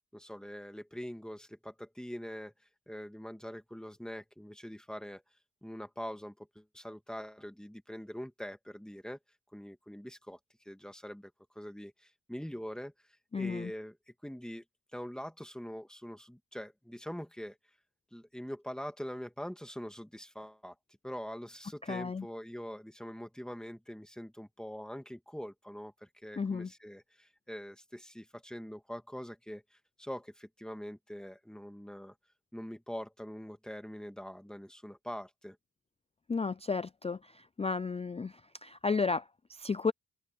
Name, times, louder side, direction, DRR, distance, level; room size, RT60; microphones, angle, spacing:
voice 1, 0.1-2.5 2.9-5.2 5.6-9.2 9.5-10.4 10.7-11.3 11.6-12.9 13.4-13.9 14.2-14.6 14.9-17.6 18.1-20.8 21.0-32.1 32.5-35.6, equal, ahead, 1.9 m, -43 dB
voice 2, 13.3-13.7 21.8-22.3 26.4-26.7 36.3-39.9, left 4 dB, 20° left, 0.3 m, -33 dB
open air
wide cardioid pair, 130°, 35 cm